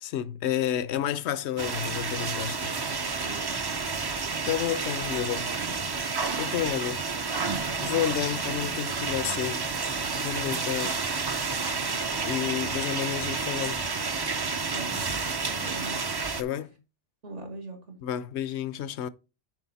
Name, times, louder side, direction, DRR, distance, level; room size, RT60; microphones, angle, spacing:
voice 1, 0.0-2.9 4.4-5.5 6.4-7.0 7.8-9.7 10.1-11.0 12.3-13.9 16.3-16.8 18.0-19.1, left 11 dB, 70° left, 0.8 m, -30 dB
sound 1, 1.6-16.4, right 4 dB, 40° right, 0.3 m, -30 dB
voice 2, 3.2-3.5 14.7-15.1 15.4-16.0 17.2-18.0, right 2 dB, 80° right, 2.2 m, -41 dB
9.7 x 4.5 x 4.1 m
omnidirectional pair, 1.2 m